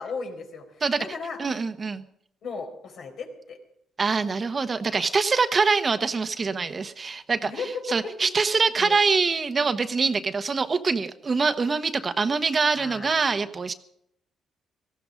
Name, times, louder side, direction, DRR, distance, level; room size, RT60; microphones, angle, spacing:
voice 1, 0.0-0.7 1.0-1.4 2.4-3.6 7.4-8.1 8.8-9.0 12.7-13.2, left 4 dB, 65° left, 3 dB, 4.5 m, -35 dB
voice 2, 1.4-2.0 4.0-7.5 7.9-13.7, right 4 dB, 35° right, 9 dB, 1.1 m, -24 dB
18.5 x 15.0 x 5.2 m, 0.73 s
cardioid pair, 90°, 0 cm